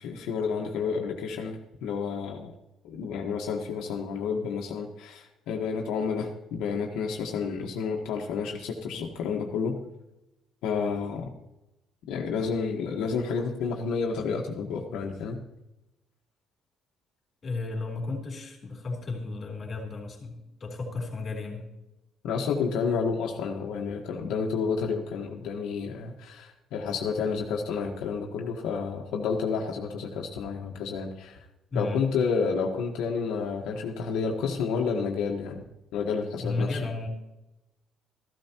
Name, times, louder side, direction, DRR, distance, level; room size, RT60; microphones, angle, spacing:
voice 1, 0.0-2.5 2.8-9.8 10.6-11.3 12.1-15.4 22.2-31.4 31.7-35.6 35.9-36.8, left 5 dB, 85° left, 1 dB, 1.2 m, -30 dB
voice 2, 17.4-21.6 31.7-32.1 36.4-37.1, left 3 dB, 35° left, 1 dB, 3.5 m, -33 dB
14.0 x 12.5 x 2.9 m, 0.94 s
cardioid pair, 130°, 0 cm